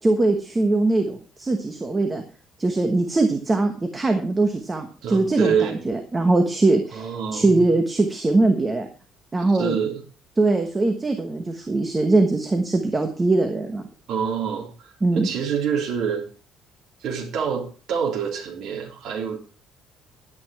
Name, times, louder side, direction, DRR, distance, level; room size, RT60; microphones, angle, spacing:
voice 1, 0.0-2.2 2.6-8.9 9.3-9.8 10.4-13.8 15.0-15.3, right 2 dB, 15° right, 5 dB, 1.2 m, -21 dB
voice 2, 5.0-5.8 6.9-7.7 9.6-10.0 14.1-16.2 17.0-19.4, right 7 dB, 55° right, -1 dB, 3.4 m, -26 dB
11.0 x 9.5 x 4.7 m, 0.36 s
cardioid pair, 165°, 0 cm